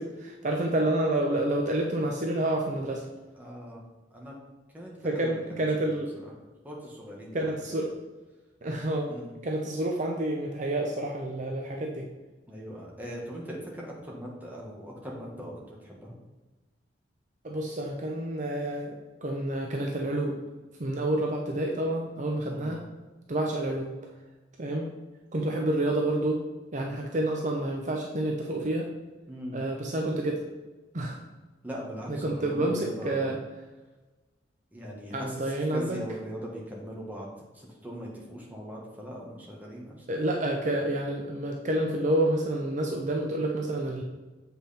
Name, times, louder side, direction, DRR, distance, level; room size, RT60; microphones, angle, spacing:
voice 1, 0.0-3.1 5.0-6.1 7.3-7.9 8.6-9.2 9.4-12.1 17.4-20.3 20.8-22.8 23.3-23.9 24.6-24.9 25.3-26.4 26.7-28.9 29.5-30.4 30.9-31.2 32.1-33.4 35.1-36.0 40.1-44.0, right 1 dB, 45° right, 0 dB, 0.7 m, -29 dB
voice 2, 3.3-3.8 4.1-4.3 4.7-5.6 5.9-6.3 6.6-7.5 9.1-9.4 12.5-16.2 22.5-22.8 29.3-29.6 31.6-33.4 34.7-40.0, equal, 10° right, -3 dB, 1.7 m, -40 dB
7.7 x 5.4 x 4.4 m, 1.2 s
head